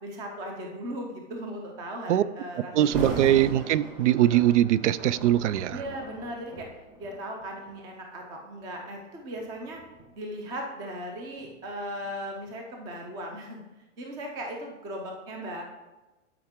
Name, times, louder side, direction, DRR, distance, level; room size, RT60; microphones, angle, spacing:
voice 1, 0.0-3.0 5.7-6.7 7.0-9.8 10.1-13.6 14.0-15.6, equal, 10° right, 2 dB, 0.5 m, -37 dB
voice 2, 2.7-5.8, right 12 dB, 75° right, 18 dB, 0.5 m, -22 dB
Thunder, 2.8-7.8 8.5-8.7 9.3-12.1 12.5-12.6, right 2 dB, 30° right, 1.3 m, -39 dB
12.5 x 4.8 x 3.6 m, 1.1 s
supercardioid pair, 165°, 37 cm